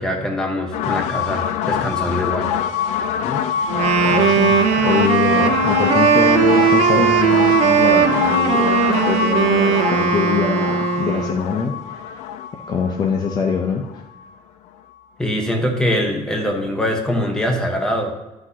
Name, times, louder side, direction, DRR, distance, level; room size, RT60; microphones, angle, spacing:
voice 1, 0.0-2.5 15.2-18.1, left 1 dB, 5° left, 1 dB, 1.1 m, -23 dB
sound 1, 0.7-14.3, left 8 dB, 85° left, 0.4 m, -24 dB
voice 2, 3.7-11.8 12.0-12.1 12.7-13.9, left 6 dB, 35° left, 3 dB, 0.6 m, -23 dB
Wind instrument woodwind instrument, 3.7-11.4, right 7 dB, 80° right, 0.8 m, -18 dB
11.5 x 6.1 x 2.8 m, 1.0 s
cardioid pair, 180°, 11 cm